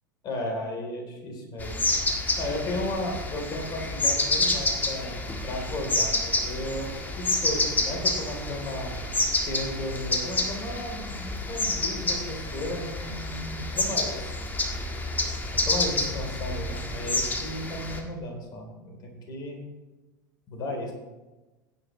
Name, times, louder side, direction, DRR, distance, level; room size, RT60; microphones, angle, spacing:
voice 1, 0.2-1.7 2.4-5.2 5.4-6.9 7.2-8.9 9.4-14.4 15.5-19.6 20.5-20.9, left 1 dB, 40° left, 1 dB, 3.7 m, -34 dB
sound 1, 1.6-18.0, left 2 dB, 15° left, 1.7 m, -29 dB
16.0 x 9.0 x 3.2 m, 1.1 s
figure-of-eight pair, 80°, 11 cm